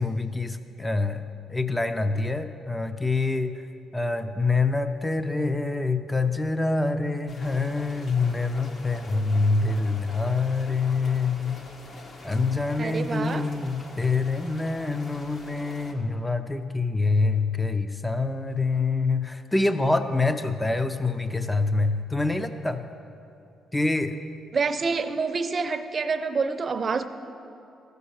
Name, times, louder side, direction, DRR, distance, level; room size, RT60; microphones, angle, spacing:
voice 1, 0.0-3.6 3.9-11.6 12.2-22.9 23.7-24.2, left 3 dB, 10° left, 9 dB, 0.5 m, -26 dB
sound 1, 7.3-15.9, left 2 dB, 50° left, 1.2 m, -44 dB
voice 2, 12.8-13.5 24.5-27.0, right 4 dB, 40° right, 9 dB, 0.6 m, -27 dB
14.0 x 6.8 x 6.3 m, 2.6 s
cardioid pair, 90°, 0 cm